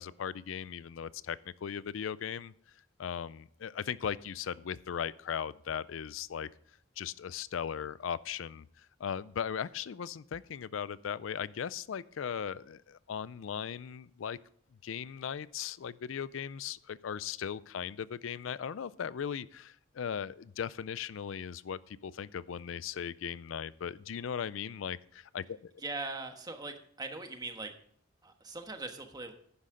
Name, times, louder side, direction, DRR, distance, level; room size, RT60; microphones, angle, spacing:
voice 1, 0.0-2.5 3.0-6.5 7.0-14.4 14.8-25.8, left 8 dB, 80° left, 19 dB, 0.4 m, -38 dB
voice 2, 25.8-27.7 28.2-29.3, right 3 dB, 20° right, 5 dB, 1.2 m, -40 dB
11.5 x 9.8 x 3.8 m, 0.64 s
head